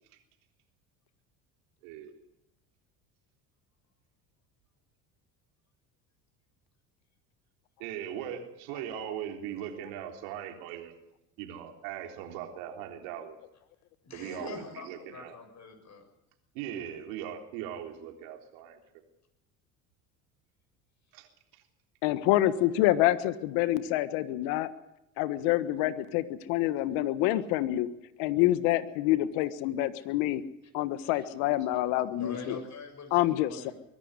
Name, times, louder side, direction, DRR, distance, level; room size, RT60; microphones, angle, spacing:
voice 1, 1.8-2.2 7.8-10.9 11.4-13.4 14.1-15.4 16.5-18.8 21.1-21.6, right 10 dB, 80° right, 4 dB, 3.7 m, -39 dB
voice 2, 14.0-16.1 31.0-31.3 31.7-31.8 32.1-33.7, left 3 dB, 40° left, 5 dB, 7.1 m, -44 dB
voice 3, 22.0-24.7 25.2-27.9 28.2-30.4 30.7-32.6 33.1-33.7, left 15 dB, 75° left, 13 dB, 1.5 m, -27 dB
23.0 x 12.0 x 9.7 m, 0.86 s
supercardioid pair, 85°, 43 cm